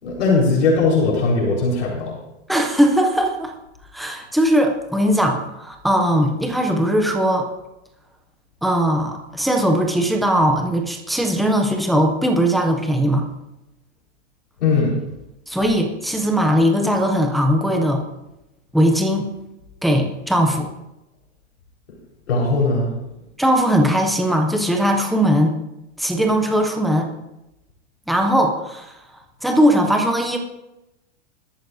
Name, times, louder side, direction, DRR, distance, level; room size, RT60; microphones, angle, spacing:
voice 1, 0.0-2.2 14.6-14.9 22.3-22.9, left 3 dB, 85° left, -3 dB, 4.3 m, -19 dB
voice 2, 2.5-3.5 3.9-7.5 8.6-13.2 15.5-18.0 18.7-19.3 19.8-20.7 23.4-25.5 26.0-27.1 28.1-29.0 29.4-30.4, equal, ahead, 2 dB, 0.3 m, -19 dB
20.5 x 13.0 x 2.6 m, 0.93 s
supercardioid pair, 150°, 35 cm